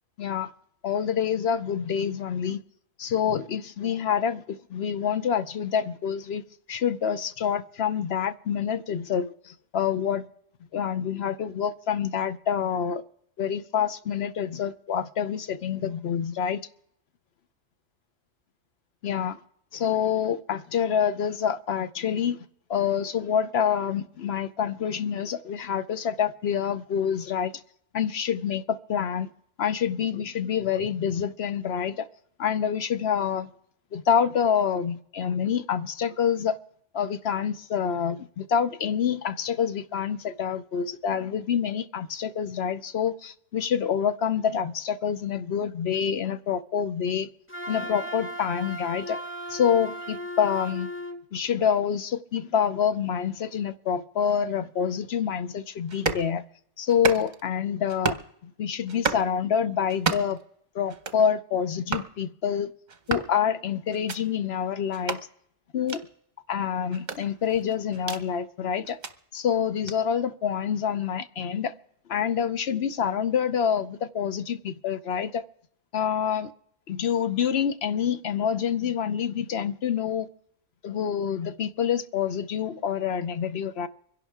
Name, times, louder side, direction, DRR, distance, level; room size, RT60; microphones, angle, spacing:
voice 1, 0.2-0.5 0.8-2.6 3.0-6.4 6.7-10.3 10.7-13.0 13.4-16.7 19.0-19.4 19.7-22.4 22.7-27.5 27.9-29.3 29.6-32.1 32.4-33.5 33.9-36.6 36.9-47.3 47.7-49.2 49.5-50.9 51.3-56.4 56.8-58.2 58.4-60.4 60.7-62.7 63.1-65.2 65.7-66.0 66.5-69.0 69.3-71.7 72.1-75.4 75.9-76.5 76.9-80.3 80.8-83.9, left 8 dB, 60° left, 0.9 m, -27 dB
Wind instrument woodwind instrument, 47.5-51.2, equal, 10° left, 1.0 m, -36 dB
sound 1, 55.9-56.3 56.9-57.5 57.9-58.3 58.9-59.3 59.9-60.4 60.9-61.2 61.9-62.1 62.9-63.3 63.9-64.2 64.9-65.2 65.9-66.0 66.9-68.2 68.8-69.1 69.9-70.0, right 4 dB, 40° right, 0.9 m, -31 dB
25.0 x 11.0 x 3.6 m
omnidirectional pair, 1.3 m